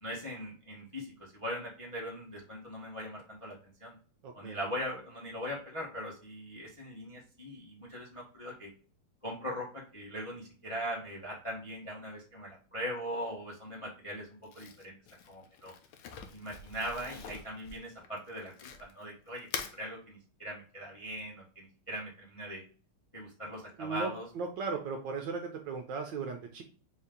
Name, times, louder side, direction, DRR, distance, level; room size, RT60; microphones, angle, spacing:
voice 1, 0.0-3.9 4.3-8.7 9.2-14.3 14.5-14.9 15.3-15.7 16.3-22.6 23.1-24.2, equal, 30° left, -4 dB, 0.5 m, -40 dB
voice 2, 4.2-4.6 23.8-26.6, right 5 dB, 75° right, 4 dB, 1.1 m, -37 dB
Crumpling crinkling, 14.4-19.0 19.4-19.8, left 6 dB, 75° left, 1.4 m, -44 dB
4.2 x 2.8 x 3.5 m, 0.42 s
omnidirectional pair, 2.4 m